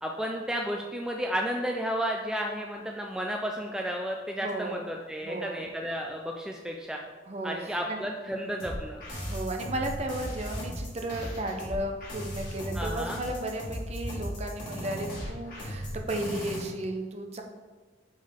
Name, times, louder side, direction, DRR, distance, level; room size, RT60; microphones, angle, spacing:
voice 1, 0.0-7.0 7.4-9.0 12.7-13.2, equal, 5° right, 0 dB, 0.3 m, -32 dB
voice 2, 4.4-4.9 5.2-5.6 7.3-8.1 8.3-8.6 9.2-17.4, right 1 dB, 35° right, 3 dB, 0.7 m, -34 dB
sound 1, 8.6-16.6, equal, 50° left, 1.9 m, -36 dB
6.4 x 4.4 x 3.5 m, 1.3 s
head